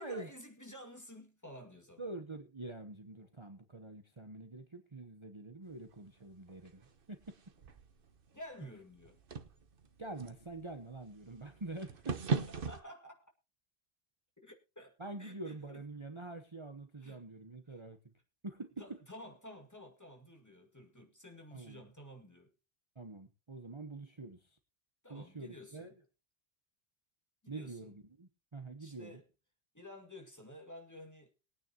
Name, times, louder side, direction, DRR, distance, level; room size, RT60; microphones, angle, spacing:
voice 1, 0.0-2.0 8.3-9.2 12.3-13.3 14.4-15.8 17.0-17.2 17.7-17.8 18.8-22.5 25.0-26.0 27.4-27.9 28.8-29.2 29.7-31.3, left 1 dB, 15° left, 2.1 m, -52 dB
voice 2, 2.0-7.3 10.0-12.2 15.0-18.0 18.4-19.0 21.5-21.8 23.0-24.4 25.1-25.9 27.5-29.2, right 2 dB, 30° right, 1.1 m, -46 dB
sound 1, 5.7-12.8, right 5 dB, 55° right, 1.2 m, -41 dB
21.5 x 9.4 x 2.9 m
omnidirectional pair, 1.1 m